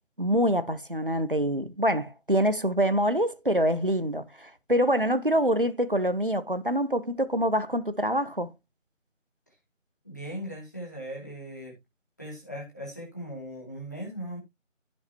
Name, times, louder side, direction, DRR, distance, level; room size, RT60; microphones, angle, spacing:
voice 1, 0.2-8.5, equal, 40° right, 1.2 m, -25 dB
voice 2, 10.0-11.7 12.2-14.4, equal, 15° left, 2.6 m, -38 dB
16.0 x 5.8 x 2.9 m
figure-of-eight pair, 175°, 39 cm